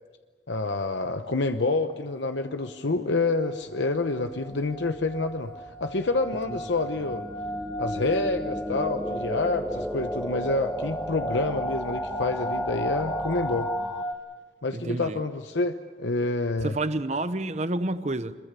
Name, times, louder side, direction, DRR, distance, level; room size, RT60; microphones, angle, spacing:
voice 1, 0.5-5.5 5.8-7.2 7.8-13.7 14.6-16.8, left 3 dB, 85° left, 7 dB, 1.0 m, -28 dB
sound 1, 1.9-2.0 2.3-2.7 3.1-14.1, equal, 30° left, 3.0 m, -36 dB
sound 2, 4.8-14.0, left 1 dB, ahead, 0.7 m, -35 dB
voice 2, 14.7-15.2 16.6-18.4, right 2 dB, 40° right, 12 dB, 0.9 m, -29 dB
26.5 x 22.5 x 6.9 m, 1.4 s
head